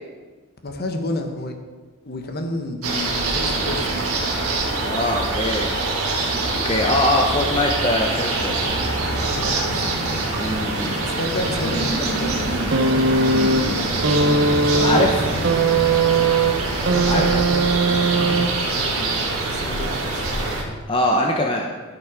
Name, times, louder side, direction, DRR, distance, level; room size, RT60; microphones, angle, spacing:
voice 1, 0.6-1.5 2.0-4.1 9.3-9.8 11.0-12.8 14.5-15.0 15.3-15.7 16.9-19.1 19.5-20.3, left 1 dB, 45° left, 4 dB, 1.1 m, -30 dB
sound 1, 2.8-20.6, right 2 dB, 80° right, 1.8 m, -24 dB
voice 2, 4.8-5.7 6.1-6.3 6.6-8.7 10.4-11.0 13.2-13.9 14.8-15.1 17.1-17.3 20.9-21.7, left 1 dB, 25° left, 1 dB, 0.7 m, -22 dB
sound 2, 12.7-18.9 19.9-20.0, right 3 dB, 55° right, 0.6 m, -20 dB
12.5 x 6.0 x 4.9 m, 1.3 s
head